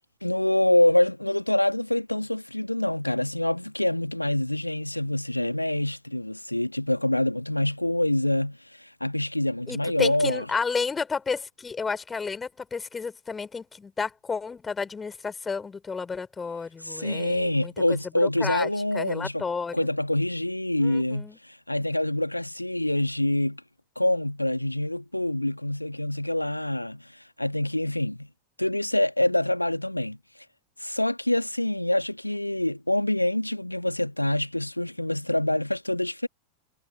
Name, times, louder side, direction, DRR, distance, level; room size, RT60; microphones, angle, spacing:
voice 1, 0.2-10.4 16.8-19.4 19.7-23.6 23.9-28.3 28.6-30.2 30.8-36.3, left 1 dB, 85° left, 1.3 m, -26 dB
voice 2, 9.7-17.7 18.2-18.7 18.9-19.8 20.8-21.4, left 5 dB, 15° left, 4.1 m, -31 dB
figure-of-eight pair, 90°, 0 cm